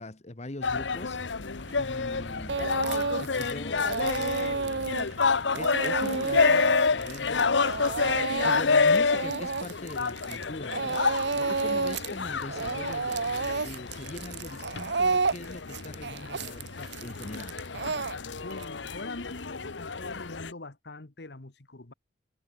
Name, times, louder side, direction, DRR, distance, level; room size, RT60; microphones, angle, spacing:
voice 1, 0.0-1.4 1.8-2.6 3.2-4.9 5.5-7.8 8.4-17.6, left 1 dB, 40° left, 1.3 m, -42 dB
sound 1, 0.6-20.5, left 4 dB, 90° left, 1.1 m, -29 dB
Truck, 1.1-19.6, right 1 dB, 40° right, 3.6 m, -53 dB
Speech / Crying sobbing, 2.5-3.5 3.8-10.4 10.7-12.1 12.4-18.6, right 4 dB, 65° right, 1.1 m, -30 dB
voice 2, 18.4-21.9, left 2 dB, 65° left, 1.6 m, -43 dB
head